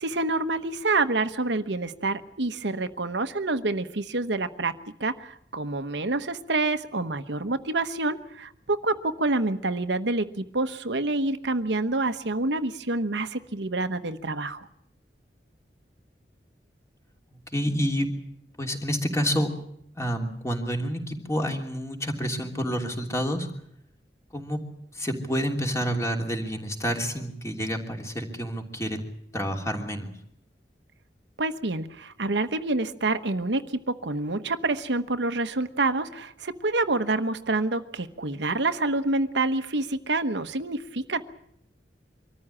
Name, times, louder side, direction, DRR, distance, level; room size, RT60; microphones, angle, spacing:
voice 1, 0.0-4.7 5.0-14.7 31.4-41.3, right 2 dB, 90° right, 9 dB, 1.2 m, -27 dB
voice 2, 17.5-18.1 18.6-19.5 20.0-23.5 24.3-24.6 24.9-29.0 29.3-30.1, equal, 15° left, 2 dB, 3.0 m, -28 dB
24.0 x 14.0 x 9.9 m, 0.71 s
head